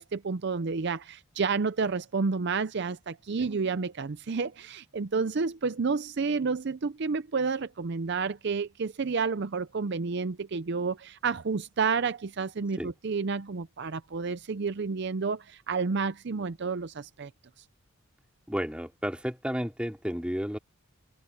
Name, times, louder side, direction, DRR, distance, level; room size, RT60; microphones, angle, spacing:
voice 1, 0.0-17.3 17.6-17.7, right 4 dB, 50° right, 0.5 m, -30 dB
voice 2, 18.5-20.6, equal, 5° right, 3.1 m, -32 dB
head